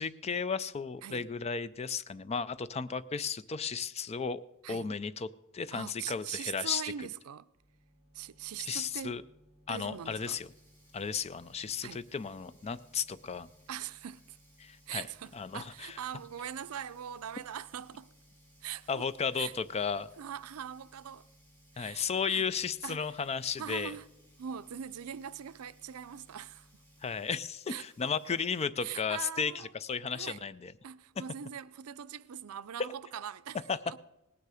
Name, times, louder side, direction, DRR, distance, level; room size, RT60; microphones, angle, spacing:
voice 1, 0.0-4.4 4.7-5.3 5.5-6.8 8.6-9.2 9.7-10.5 10.9-13.5 14.6-15.1 15.3-15.9 18.9-20.1 21.8-23.9 27.0-30.7 33.7-33.8, left 6 dB, 30° left, 0.4 m, -34 dB
voice 2, 5.7-7.5 8.1-9.2 9.7-10.4 11.8-12.1 13.7-14.4 14.9-18.1 18.6-19.1 19.4-19.5 20.2-21.3 21.7-22.5 22.8-23.1 23.6-24.1 24.4-26.7 27.7-28.1 28.8-29.7 30.1-30.4 30.8-33.6 33.9-34.0, right 9 dB, 85° right, 0.5 m, -42 dB
sound 1, 7.5-27.2, equal, 30° right, 2.8 m, -64 dB
Sink (filling or washing), 9.9-28.6, equal, 10° left, 3.6 m, -66 dB
18.5 x 9.4 x 4.9 m
head